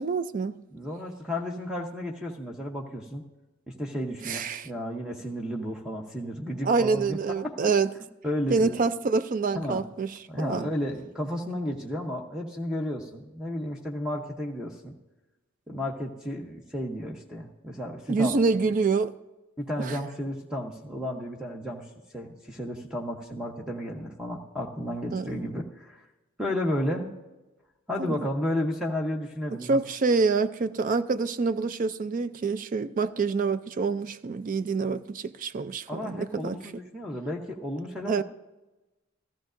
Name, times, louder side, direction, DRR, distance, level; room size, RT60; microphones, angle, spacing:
voice 1, 0.0-0.5 4.3-4.7 6.7-7.9 8.5-10.1 10.4-10.7 18.1-19.1 19.9-20.0 25.1-25.4 28.0-28.3 29.7-36.6 38.1-38.2, right 4 dB, 40° right, 0.4 m, -26 dB
voice 2, 0.7-3.2 3.7-7.7 8.2-8.8 9.5-9.9 10.3-14.9 15.7-18.3 19.6-21.9 22.1-26.0 26.4-27.1 27.9-29.8 35.9-38.2, left 1 dB, 5° right, 0.8 m, -33 dB
14.5 x 14.0 x 2.6 m
head